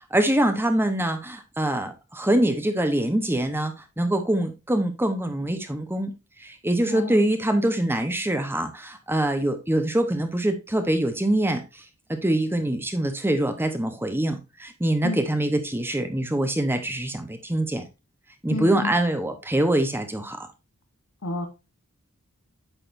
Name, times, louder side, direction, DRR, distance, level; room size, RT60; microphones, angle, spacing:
voice 1, 0.1-6.1 6.4-11.8 12.1-17.8 18.4-20.5, right 1 dB, 10° right, 0.9 m, -24 dB
voice 2, 6.8-7.2 15.0-15.2 18.5-18.9 21.2-21.5, left 3 dB, 65° left, 1.2 m, -30 dB
9.0 x 6.7 x 2.6 m
head